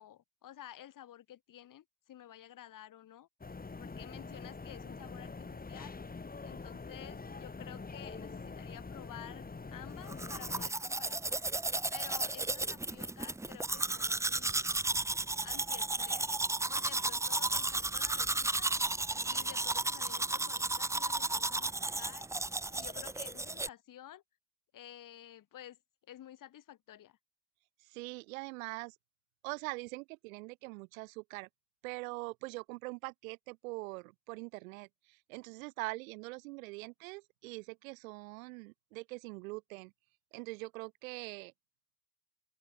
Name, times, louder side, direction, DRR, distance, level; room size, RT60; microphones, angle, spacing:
voice 1, 0.0-3.3 3.8-6.0 6.4-9.4 9.7-11.4 11.9-14.7 15.4-16.3 16.7-18.7 19.2-22.3 22.7-24.2 24.7-25.8 26.1-27.2, left 11 dB, 50° left, 3.5 m, -52 dB
sound 1, 3.4-10.7, left 4 dB, 20° left, 6.8 m, -45 dB
Domestic sounds home sounds, 10.1-23.7, right 2 dB, 5° right, 0.7 m, -34 dB
voice 2, 27.8-28.9 29.4-31.5 31.8-39.9 40.3-41.5, right 25 dB, 85° right, 4.8 m, -43 dB
open air
supercardioid pair, 75°, 40 cm